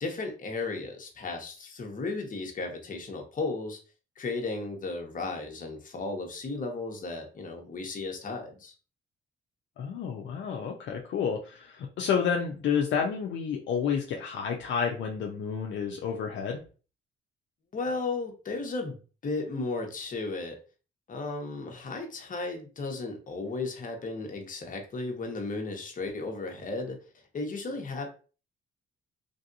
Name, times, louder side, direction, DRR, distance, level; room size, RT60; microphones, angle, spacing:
voice 1, 0.0-3.8 4.2-8.7 17.7-18.9 19.2-20.6 21.1-27.0 27.3-28.1, left 3 dB, 40° left, 3 dB, 1.0 m, -34 dB
voice 2, 9.8-16.6, left 7 dB, 70° left, 1 dB, 0.6 m, -30 dB
3.4 x 2.6 x 2.6 m, 0.36 s
cardioid pair, 90°, 20 cm